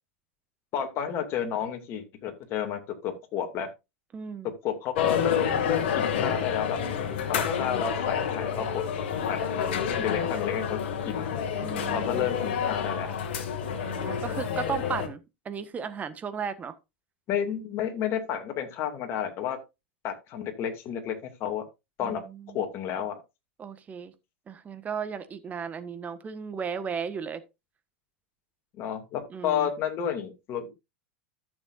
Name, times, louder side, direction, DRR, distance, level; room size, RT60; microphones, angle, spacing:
voice 1, 0.7-3.7 4.4-6.8 7.3-8.9 9.3-10.8 11.1-11.3 11.9-13.1 17.3-19.6 20.0-21.6 22.0-22.2 22.5-23.2 28.8-30.7, left 9 dB, 45° left, 2.5 m, -31 dB
voice 2, 4.1-4.5 11.6-12.3 13.7-16.7 22.0-22.6 23.6-24.1 24.5-27.4 29.3-29.7, right 6 dB, 25° right, 1.4 m, -35 dB
sound 1, 5.0-15.1, left 7 dB, 65° left, 2.1 m, -29 dB
13.5 x 7.0 x 2.6 m
hypercardioid pair, 95°, 6 cm